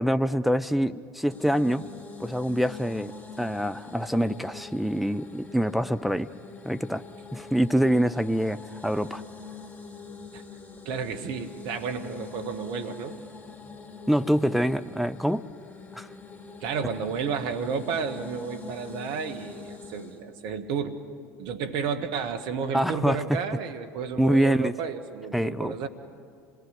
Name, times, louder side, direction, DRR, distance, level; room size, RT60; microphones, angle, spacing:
voice 1, 0.0-1.9 2.2-6.3 6.6-7.0 7.3-9.2 14.1-15.5 15.9-16.1 22.7-23.4 24.2-24.7 25.3-25.7, equal, ahead, 11 dB, 0.6 m, -25 dB
sound 1, 1.3-20.2, left 4 dB, 15° left, 3.8 m, -44 dB
voice 2, 10.9-13.2 16.6-21.0 21.4-25.9, right 6 dB, 65° right, 8 dB, 1.7 m, -32 dB
27.0 x 18.5 x 9.9 m, 2.3 s
hypercardioid pair, 70°, 9 cm